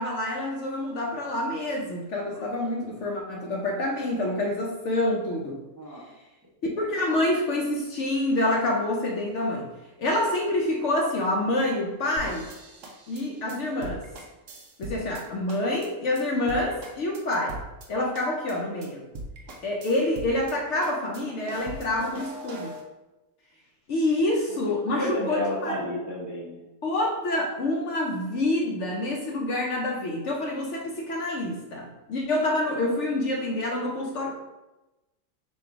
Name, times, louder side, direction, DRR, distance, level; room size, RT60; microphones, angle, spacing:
voice 1, 0.0-5.6 6.8-9.7 10.0-12.5 13.1-14.0 14.8-17.6 17.9-19.1 19.6-22.7 23.9-25.8 26.8-34.3, left 1 dB, 65° left, 0 dB, 0.8 m, -27 dB
voice 2, 5.5-6.0 24.9-26.6, equal, 30° right, -5 dB, 0.3 m, -31 dB
sound 1, 12.2-15.2 15.5-15.9 16.2-16.3 16.5-17.9 18.1-18.5 18.8-18.9 19.1-20.5 20.8-22.8, right 1 dB, 60° right, 0.9 m, -40 dB
4.2 x 2.4 x 4.5 m, 1.0 s
omnidirectional pair, 1.6 m